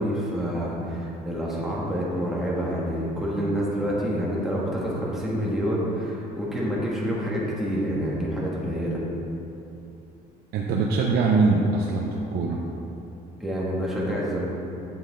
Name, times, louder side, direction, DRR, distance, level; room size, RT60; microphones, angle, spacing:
voice 1, 0.0-9.0 13.4-14.5, equal, ahead, -6 dB, 2.2 m, -27 dB
voice 2, 10.5-12.6, right 3 dB, 70° right, -2 dB, 0.8 m, -22 dB
8.8 x 7.3 x 4.0 m, 2.8 s
cardioid pair, 110°, 17 cm